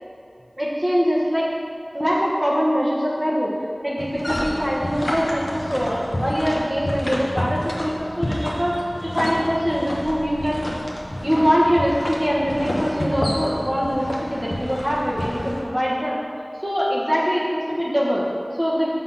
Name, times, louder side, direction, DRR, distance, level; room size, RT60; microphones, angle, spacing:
voice 1, 0.6-1.5 1.9-3.5 3.8-10.6 11.2-16.2 16.6-18.3 18.6-18.9, equal, 20° right, -6 dB, 1.2 m, -23 dB
sound 1, 4.0-15.6, left 1 dB, 60° left, 1.0 m, -29 dB
6.4 x 4.0 x 5.6 m, 2.4 s
wide cardioid pair, 45°, 0 cm